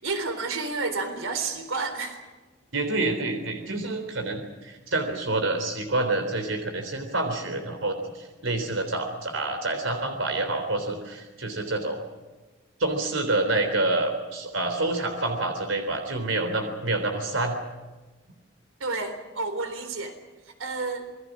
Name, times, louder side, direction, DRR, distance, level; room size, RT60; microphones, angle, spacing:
voice 1, 0.0-2.2 18.8-20.2 20.4-21.1, right 3 dB, 90° right, 7 dB, 3.8 m, -30 dB
voice 2, 2.7-12.0 12.8-17.6, right 2 dB, 75° right, 5 dB, 3.6 m, -27 dB
27.5 x 21.0 x 6.2 m, 1.2 s
head